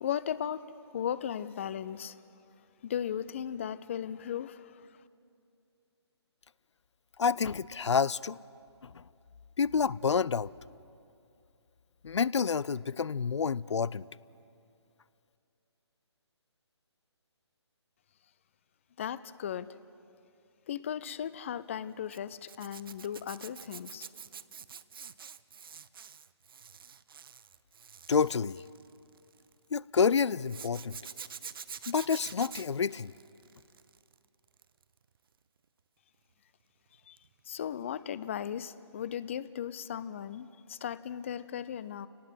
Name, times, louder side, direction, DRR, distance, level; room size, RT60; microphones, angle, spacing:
voice 1, 0.0-2.2 2.8-4.9 19.0-19.7 20.7-24.1 37.1-37.2 37.5-42.1, left 9 dB, 25° left, 17 dB, 0.4 m, -36 dB
voice 2, 7.2-8.4 8.8-9.0 9.6-10.5 12.0-14.1 28.1-28.6 29.7-31.0 31.9-33.1, left 6 dB, 80° left, 22 dB, 0.4 m, -28 dB
Zipper (clothing), 22.1-29.5 30.5-34.1 34.5-34.8 37.2-37.3 37.6-37.7, right 7 dB, 50° right, 0.6 m, -47 dB
28.0 x 19.0 x 5.7 m, 2.6 s
figure-of-eight pair, 155°, 15 cm